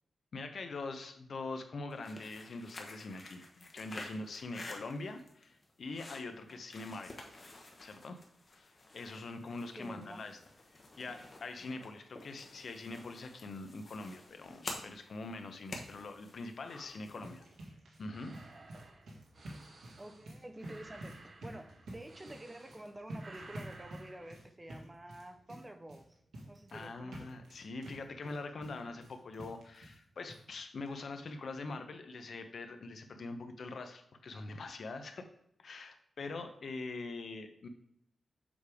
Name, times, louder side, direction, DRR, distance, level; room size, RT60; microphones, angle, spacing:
voice 1, 0.3-7.3 7.8-8.2 8.5-10.4 11.0-17.4 18.0-18.4 26.7-35.3 35.6-37.7, left 3 dB, 60° left, 7 dB, 0.8 m, -43 dB
sound 1, 1.9-17.5, left 2 dB, 40° left, 1.0 m, -50 dB
voice 2, 9.8-10.3 10.8-10.9 20.0-26.2 26.5-27.2, right 1 dB, 15° right, 7 dB, 0.5 m, -49 dB
sound 2, 16.8-30.0 30.3-30.4 30.9-31.0 31.3-31.4, right 1 dB, 85° right, 1.7 m, -50 dB
sound 3, 18.1-22.9 23.1-24.3, right 3 dB, 45° right, 0.8 m, -55 dB
7.1 x 3.4 x 4.8 m, 0.72 s
wide cardioid pair, 125°, 0 cm